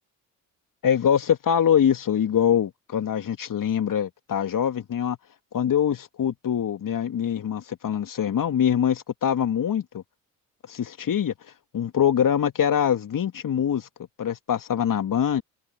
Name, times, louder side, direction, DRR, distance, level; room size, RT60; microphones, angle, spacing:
voice 1, 0.8-5.2 5.5-10.0 10.7-11.3 11.7-13.9 14.2-15.4, left 9 dB, 45° left, 2.5 m, -24 dB
open air
figure-of-eight pair, 50°, 46 cm